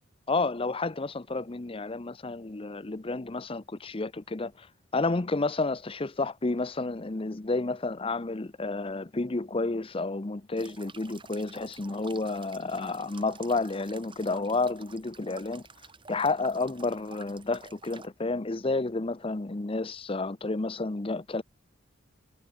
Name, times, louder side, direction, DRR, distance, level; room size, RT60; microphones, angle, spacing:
voice 1, 0.3-4.7 4.9-15.6 16.1-21.4, left 3 dB, 30° left, 0.7 m, -30 dB
sound 1, 10.6-18.1, right 5 dB, 25° right, 3.5 m, -50 dB
head